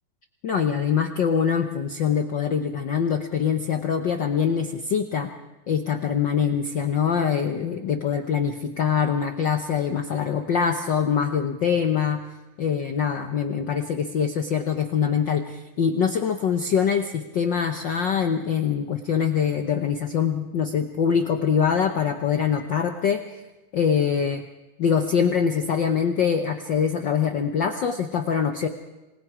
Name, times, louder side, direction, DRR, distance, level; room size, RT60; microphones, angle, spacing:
voice 1, 0.4-5.3 5.7-12.2 12.6-23.4 23.7-24.4 24.8-28.7, left 7 dB, 80° left, 6 dB, 1.0 m, -24 dB
27.5 x 19.5 x 4.9 m, 1.0 s
omnidirectional pair, 3.5 m